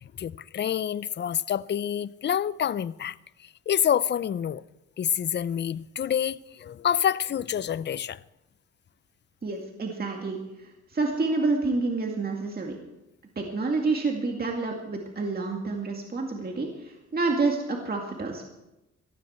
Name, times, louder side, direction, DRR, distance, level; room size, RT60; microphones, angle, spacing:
voice 1, 0.2-3.1 3.7-4.6 5.0-8.2, left 9 dB, 35° left, 0.5 m, -27 dB
voice 2, 9.4-12.8 13.4-18.5, right 3 dB, 30° right, 2.1 m, -28 dB
17.5 x 14.5 x 4.4 m
cardioid pair, 90°, 30 cm